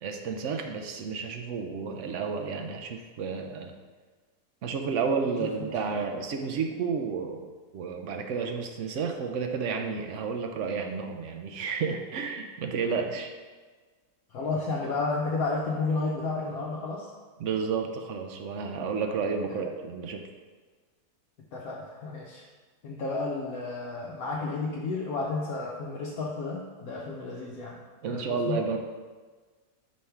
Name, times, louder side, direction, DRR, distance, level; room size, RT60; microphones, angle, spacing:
voice 1, 0.0-3.8 4.6-13.4 17.4-20.2 28.0-28.8, right 5 dB, 65° right, 4 dB, 0.8 m, -31 dB
voice 2, 14.3-17.1 19.5-19.6 21.5-22.4 22.8-27.8 28.1-28.6, left 3 dB, 70° left, -3 dB, 1.1 m, -32 dB
5.4 x 3.4 x 5.7 m, 1.4 s
omnidirectional pair, 1.7 m